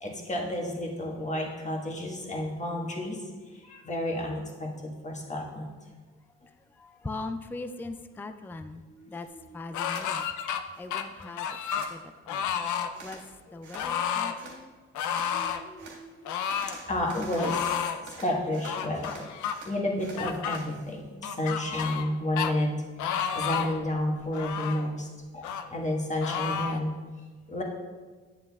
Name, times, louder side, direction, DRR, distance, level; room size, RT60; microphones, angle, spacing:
voice 1, 0.0-3.2 3.4-5.7 8.9-9.4 15.3-16.2 16.7-19.2 19.7-22.7 23.3-25.1 25.3-27.0 27.5-27.6, left 1 dB, 25° left, -1 dB, 1.4 m, -31 dB
voice 2, 6.5-9.3 9.5-10.3 10.8-12.6 13.0-13.2 13.5-14.7, left 2 dB, 5° left, 8 dB, 0.3 m, -41 dB
sound 1, 9.7-10.6 10.9-11.9 12.3-12.9 13.7-14.3 14.9-15.6 16.2-16.8 17.4-18.0 18.6-19.5 20.2-20.6 21.2-22.1 22.4-22.5 23.0-23.8 24.3-24.8 25.4-25.6 26.2-26.8, left 8 dB, 75° left, 0.5 m, -31 dB
sound 2, 9.9-10.1 10.5-11.3 11.5-11.9 12.9-13.2 13.6-13.9 14.3-14.6 15.1-15.3 15.8-16.0 16.4-18.8 19.0-20.7, right 3 dB, 75° right, 1.8 m, -47 dB
9.3 x 7.7 x 2.3 m, 1.4 s
cardioid pair, 90°, 30 cm